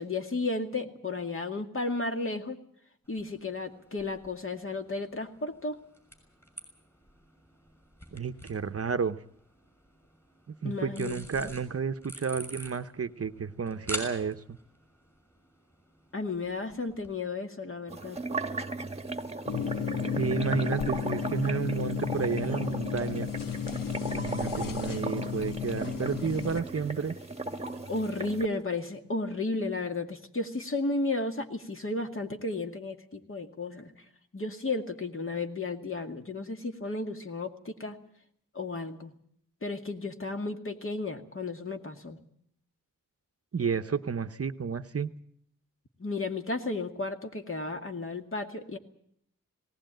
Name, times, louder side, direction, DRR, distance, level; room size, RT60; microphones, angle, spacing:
voice 1, 0.0-2.6 3.1-5.8 10.6-11.5 16.1-18.2 27.9-33.9 34.3-38.0 38.5-39.1 39.6-42.2 46.0-48.8, left 3 dB, 40° left, 5 dB, 2.2 m, -33 dB
sound 1, 3.0-17.1, equal, 5° left, 6.1 m, -47 dB
voice 2, 8.1-9.2 10.5-14.6 20.2-23.3 24.1-27.2 43.5-45.1, right 6 dB, 45° right, 10 dB, 0.8 m, -31 dB
sound 2, 17.9-28.5, right 2 dB, 20° right, 1.4 m, -36 dB
sound 3, 19.5-26.6, left 8 dB, 85° left, 1.0 m, -33 dB
19.0 x 18.0 x 9.0 m, 0.67 s
wide cardioid pair, 120°, 33 cm